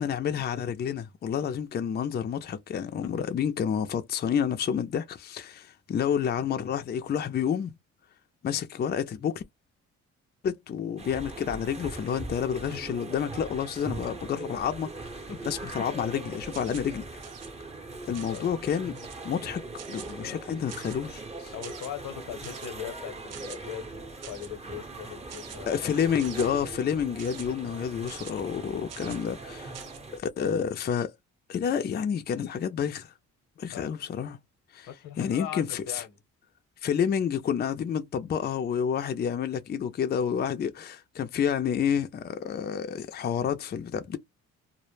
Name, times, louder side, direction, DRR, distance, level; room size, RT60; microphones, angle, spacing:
voice 1, 0.0-7.8 8.4-9.4 10.4-15.2 15.5-17.1 18.0-19.0 19.2-19.6 19.9-21.5 25.7-29.7 30.2-31.1 31.5-33.1 33.6-34.4 34.7-34.9 35.2-36.0 36.8-44.2, left 8 dB, 35° left, 0.4 m, -29 dB
sound 1, 11.0-30.2, right 3 dB, 20° right, 0.7 m, -41 dB
sound 2, 16.5-16.9 17.2-17.5 18.1-18.5 18.9-19.3 19.8-20.1 20.7-21.1 21.6-21.9 22.4-22.7 23.3-23.6 24.2-24.5 25.3-25.6 26.2-26.5 27.2-27.5 28.1-28.3 28.9-29.2 29.7-30.0, right 8 dB, 55° right, 0.6 m, -45 dB
voice 2, 18.2-18.5 21.5-25.9 28.0-28.1 28.5-28.7 29.8-30.0 30.4-30.5 33.7-34.0 34.9-36.2, left 9 dB, 80° left, 0.8 m, -40 dB
2.0 x 2.0 x 3.1 m
cardioid pair, 90°, 30 cm